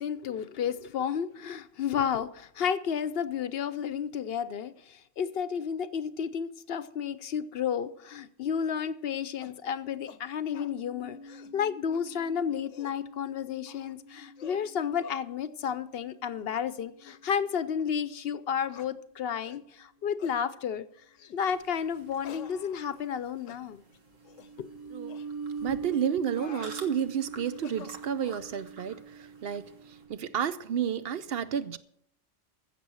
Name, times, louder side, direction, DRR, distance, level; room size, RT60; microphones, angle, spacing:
voice 1, 0.0-20.9 21.3-23.8 24.6-24.7, left 7 dB, 60° left, 0.8 m, -32 dB
sound 1, 9.4-9.6 10.1-10.2 10.5-10.7 11.2-11.6 11.9-12.0 12.5-13.0 13.7-14.0 14.4-14.7 15.0-15.2 15.6-15.8 16.4-16.6 17.0-17.2 17.8-17.9 18.7-18.9 19.4-19.6 20.2-20.4 21.1-21.4 22.2-23.2 23.5-23.6 24.2-24.5 25.1-25.3 26.1-26.8 27.5-28.4, left 8 dB, 85° left, 1.1 m, -49 dB
sound 2, 10.6-18.1 24.2-30.5, right 4 dB, 25° right, 0.6 m, -44 dB
sound 3, 21.5-30.1, right 3 dB, 85° right, 2.0 m, -52 dB
voice 2, 25.6-29.7 30.1-31.8, right 8 dB, 60° right, 0.8 m, -31 dB
15.0 x 6.9 x 6.2 m
omnidirectional pair, 1.3 m